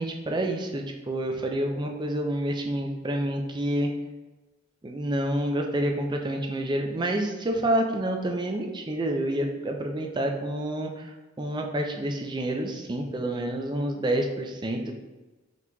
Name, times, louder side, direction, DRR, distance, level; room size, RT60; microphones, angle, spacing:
voice 1, 0.0-3.9 4.8-11.1 11.4-14.9, right 1 dB, 20° right, 3 dB, 0.4 m, -28 dB
4.5 x 3.8 x 2.2 m, 1.2 s
head